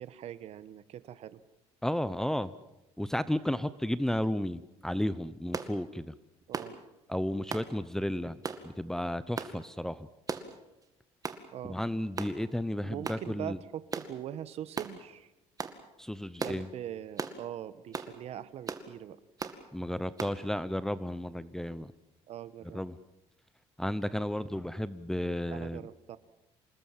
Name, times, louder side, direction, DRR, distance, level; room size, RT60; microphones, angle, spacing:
voice 1, 0.0-1.4 6.5-6.7 11.5-11.8 12.8-15.3 16.4-19.2 22.3-22.8 25.5-26.2, right 11 dB, 60° right, 15 dB, 1.3 m, -42 dB
voice 2, 1.8-2.5 3.0-6.1 7.1-8.4 8.6-10.1 11.7-13.6 16.0-16.7 19.7-21.9 22.7-22.9 23.8-25.8, left 1 dB, 5° left, 16 dB, 0.8 m, -33 dB
sound 1, 5.5-5.7 6.5-6.8 7.5-7.7 8.4-8.6 9.4-9.6 10.3-10.5 11.2-11.4 12.2-12.4 13.0-13.2 13.9-14.1 14.8-14.9 15.6-15.8 16.4-16.6 17.2-17.4 17.9-18.1 18.7-18.9 19.4-19.6 20.2-20.4, right 5 dB, 30° right, 2.1 m, -36 dB
27.5 x 20.0 x 7.5 m, 0.92 s
cardioid pair, 120°, 12 cm